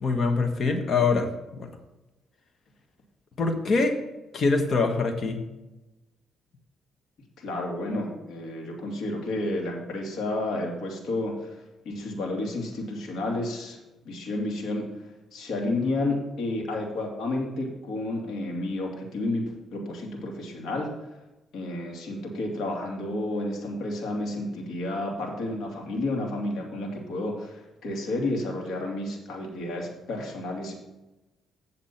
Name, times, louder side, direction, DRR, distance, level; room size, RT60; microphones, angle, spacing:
voice 1, 0.0-1.3 1.6-1.7 3.4-4.0 4.3-5.4, left 4 dB, 50° left, 5 dB, 1.4 m, -24 dB
voice 2, 7.4-13.8 14.0-14.9 15.3-20.9 21.5-30.8, left 2 dB, 70° left, -1 dB, 2.4 m, -31 dB
8.3 x 7.3 x 4.3 m, 1.0 s
cardioid pair, 90°, 0 cm